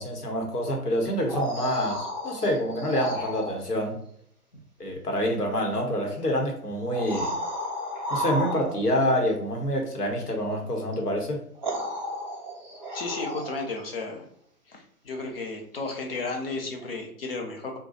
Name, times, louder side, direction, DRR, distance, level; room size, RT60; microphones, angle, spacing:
voice 1, 0.0-4.0 4.8-7.3 8.1-11.4, equal, 80° left, 2 dB, 1.1 m, -27 dB
sound 1, 1.1-3.6 5.5-5.6 6.8-9.0 10.9-11.0 11.6-13.7 16.8-16.9, equal, 30° right, 0.4 m, -33 dB
voice 2, 12.9-14.2 14.7-17.8, left 3 dB, 40° left, 1 dB, 0.7 m, -33 dB
2.6 x 2.3 x 4.0 m, 0.67 s
figure-of-eight pair, 135°, 46 cm